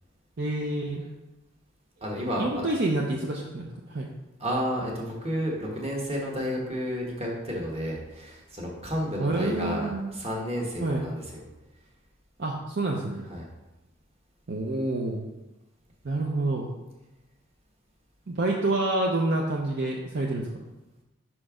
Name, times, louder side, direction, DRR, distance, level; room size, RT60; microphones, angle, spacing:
voice 1, 0.4-1.0 2.4-4.1 9.2-10.1 10.8-11.0 12.4-13.2 14.5-15.3 16.0-16.7 18.3-20.6, right 2 dB, 50° right, -1 dB, 0.6 m, -28 dB
voice 2, 2.0-2.6 4.4-11.4 13.3-13.4, equal, 30° right, -2 dB, 1.3 m, -31 dB
5.8 x 4.4 x 5.0 m, 1.0 s
head